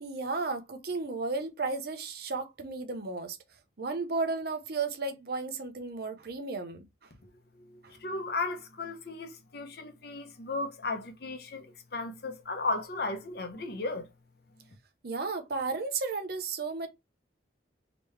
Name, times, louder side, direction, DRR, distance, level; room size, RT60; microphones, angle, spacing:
voice 1, 0.0-3.4 3.8-6.8 15.0-16.9, right 3 dB, 55° right, 0.7 m, -33 dB
voice 2, 7.6-14.1, left 3 dB, 55° left, 0.8 m, -35 dB
3.4 x 3.0 x 3.2 m
head